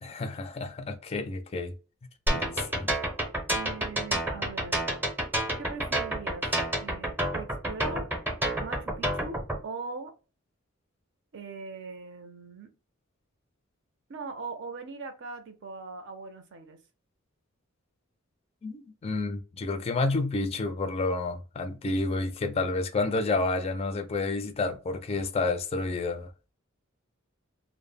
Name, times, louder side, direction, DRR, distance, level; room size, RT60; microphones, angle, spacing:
voice 1, 0.0-1.7 2.3-2.9 18.6-26.3, left 3 dB, 30° left, 0.3 m, -30 dB
sound 1, 2.3-9.6, right 1 dB, 10° right, 0.6 m, -29 dB
voice 2, 2.3-2.8 3.5-4.9 5.6-6.5 6.8-8.1 8.6-10.1 11.3-12.7 14.1-16.8, right 4 dB, 60° right, 0.6 m, -41 dB
2.0 x 2.0 x 3.3 m
head